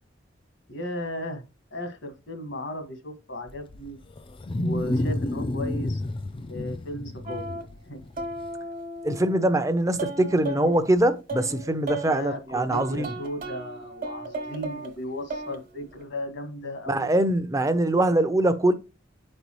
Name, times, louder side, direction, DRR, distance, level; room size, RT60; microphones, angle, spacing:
voice 1, 0.7-1.4 1.7-4.0 4.6-6.0 6.5-7.6 7.9-8.0 12.0-17.1, left 1 dB, 75° left, 1.7 m, -35 dB
Wild animals, 3.5-8.5, left 1 dB, 30° left, 0.4 m, -30 dB
sound 1, 7.3-7.6 8.2-10.8 11.3-12.4 12.7-14.9 15.3-15.6 15.9-16.0, right 2 dB, 50° right, 1.3 m, -35 dB
voice 2, 9.0-13.2 16.9-18.7, right 1 dB, 15° right, 0.7 m, -23 dB
8.0 x 5.4 x 3.1 m
head